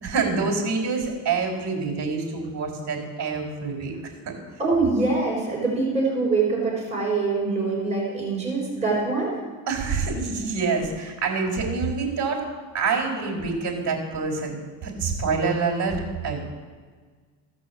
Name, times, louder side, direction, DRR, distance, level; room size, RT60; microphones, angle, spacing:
voice 1, 0.0-4.1 9.7-12.5 12.7-16.4, right 4 dB, 40° right, 0 dB, 4.1 m, -26 dB
voice 2, 4.6-9.3, right 3 dB, 15° right, -4 dB, 4.7 m, -24 dB
16.0 x 6.2 x 7.1 m, 1.5 s
cardioid pair, 125°, 44 cm